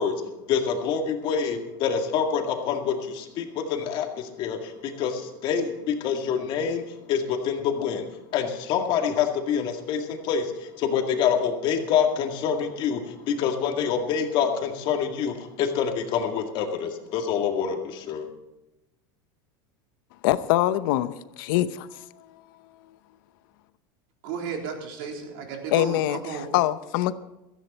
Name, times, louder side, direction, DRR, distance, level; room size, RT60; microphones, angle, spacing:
voice 1, 0.0-6.8 7.1-8.1 8.3-10.5 10.8-18.3, left 7 dB, 45° left, 2.1 m, -26 dB
voice 2, 20.2-22.3 25.7-27.1, left 14 dB, 70° left, 0.8 m, -24 dB
voice 3, 24.2-26.5, right 6 dB, 70° right, 3.7 m, -34 dB
16.0 x 14.5 x 4.3 m
supercardioid pair, 140°, 11 cm